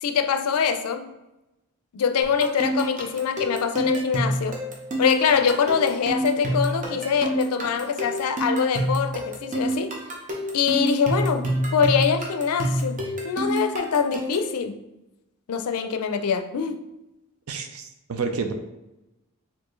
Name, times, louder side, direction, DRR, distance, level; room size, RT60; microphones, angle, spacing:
voice 1, 0.0-1.1 1.9-4.6 5.0-9.9 10.5-11.5 11.7-13.0 13.2-14.8 15.5-16.8, left 6 dB, 85° left, 0.4 m, -24 dB
sound 1, 2.2-14.5, right 1 dB, 35° right, 0.7 m, -27 dB
voice 2, 17.5-18.5, right 5 dB, 70° right, 0.5 m, -29 dB
4.4 x 2.6 x 3.1 m
head